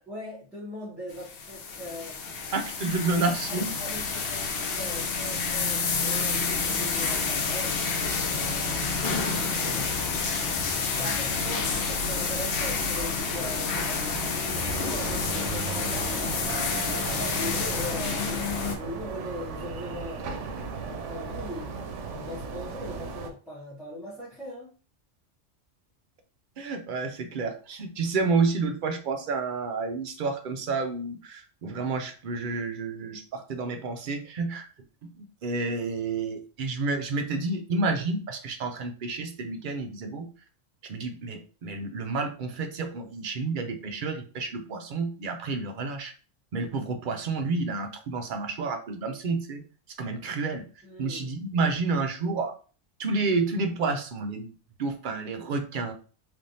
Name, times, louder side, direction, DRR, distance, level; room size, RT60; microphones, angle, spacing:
voice 1, 0.1-2.2 3.2-7.8 8.3-10.5 10.9-16.3 16.8-20.4 20.9-21.8 22.1-24.7 50.8-51.3, left 1 dB, ahead, -10 dB, 1.0 m, -40 dB
sound 1, 1.1-18.8, left 4 dB, 60° left, 0.7 m, -29 dB
voice 2, 2.5-3.7 26.6-34.6 35.2-40.3 40.9-46.1 46.5-49.6 50.0-50.6 51.0-52.5 53.0-54.5 54.8-55.9, right 3 dB, 60° right, 5 dB, 0.6 m, -30 dB
sound 2, 14.5-23.3, right 5 dB, 80° right, 0.9 m, -36 dB
3.3 x 2.6 x 2.6 m, 0.37 s
omnidirectional pair, 1.2 m